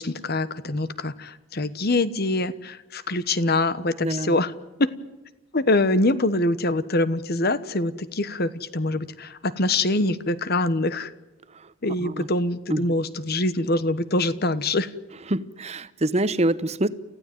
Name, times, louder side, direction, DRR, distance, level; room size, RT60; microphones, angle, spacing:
voice 1, 0.0-4.5 4.8-4.9 5.5-11.1 11.8-14.9, left 2 dB, 50° left, 15 dB, 1.2 m, -24 dB
voice 2, 4.0-4.4 11.5-11.7 12.0-12.3 12.7-12.9 15.3-16.9, right 1 dB, 30° right, 15 dB, 0.9 m, -25 dB
29.5 x 15.0 x 9.2 m, 1.0 s
head